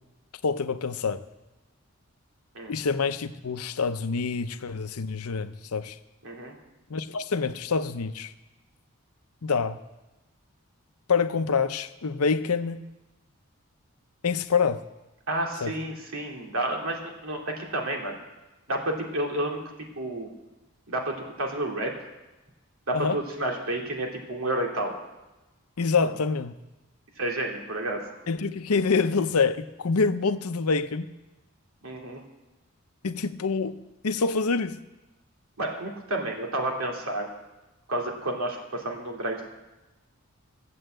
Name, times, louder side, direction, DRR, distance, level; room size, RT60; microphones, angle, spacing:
voice 1, 0.4-1.2 2.7-6.0 6.9-8.3 9.4-9.8 11.1-12.8 14.2-14.8 15.6-15.7 22.9-23.2 25.8-26.5 28.3-31.1 33.0-33.8 34.0-34.8, left 4 dB, 90° left, 10 dB, 0.7 m, -26 dB
voice 2, 6.2-6.5 15.3-18.2 18.7-19.6 20.0-20.3 20.9-21.9 22.9-24.9 27.2-28.1 31.8-32.2 35.6-37.3 37.9-39.5, right 1 dB, 75° right, 1 dB, 2.5 m, -30 dB
14.5 x 7.8 x 7.8 m, 1.0 s
head